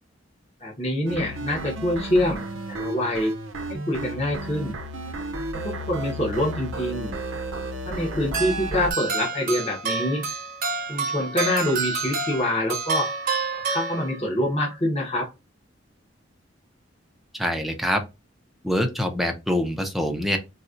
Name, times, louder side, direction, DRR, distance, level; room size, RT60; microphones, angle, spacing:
voice 1, 0.6-2.4 2.7-3.3 3.7-4.8 5.6-7.1 7.8-10.2 10.9-13.1 13.5-15.3, left 1 dB, 30° left, -2 dB, 1.1 m, -25 dB
sound 1, 1.1-8.9, right 1 dB, 85° right, 0.6 m, -33 dB
sound 2, 8.3-14.5, right 4 dB, 45° right, 0.9 m, -29 dB
voice 2, 17.3-18.0 18.6-20.4, equal, ahead, 4 dB, 0.6 m, -25 dB
4.0 x 2.3 x 2.5 m, 0.25 s
head